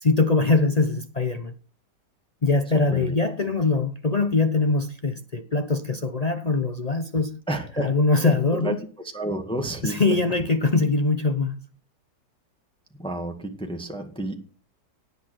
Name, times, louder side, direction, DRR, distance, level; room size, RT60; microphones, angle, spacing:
voice 1, 0.0-1.5 2.4-7.4 7.8-8.8 9.8-11.6, left 3 dB, 45° left, 0.5 m, -22 dB
voice 2, 7.5-7.9 8.2-8.7 9.1-10.1 13.0-14.4, right 1 dB, 5° left, 1.9 m, -30 dB
18.0 x 8.5 x 6.3 m
omnidirectional pair, 2.0 m